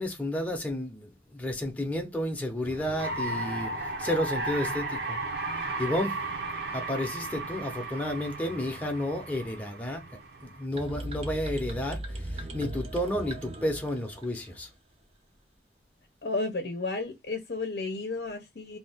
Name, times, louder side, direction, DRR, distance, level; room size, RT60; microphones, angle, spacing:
voice 1, 0.0-3.7 4.0-5.2 5.6-6.2 6.7-10.1 10.4-14.7, left 1 dB, 10° left, 0.7 m, -31 dB
sound 1, 2.6-10.6, right 2 dB, 65° right, 0.8 m, -35 dB
sound 2, 10.7-14.7, right 1 dB, 35° right, 0.5 m, -38 dB
voice 2, 16.2-18.8, left 3 dB, 60° left, 0.6 m, -32 dB
2.7 x 2.4 x 3.4 m
head